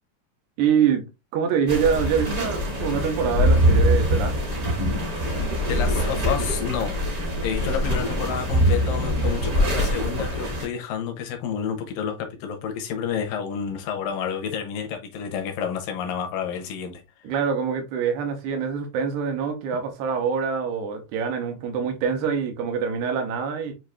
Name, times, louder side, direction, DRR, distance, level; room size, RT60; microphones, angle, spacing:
voice 1, 0.6-1.0 1.3-4.4 17.2-23.7, right 7 dB, 85° right, 2.9 m, -25 dB
sound 1, 1.7-10.7, equal, 65° right, 0.8 m, -23 dB
voice 2, 5.7-7.0 7.4-17.3, left 7 dB, 75° left, 2.1 m, -30 dB
7.9 x 2.7 x 2.4 m
omnidirectional pair, 4.7 m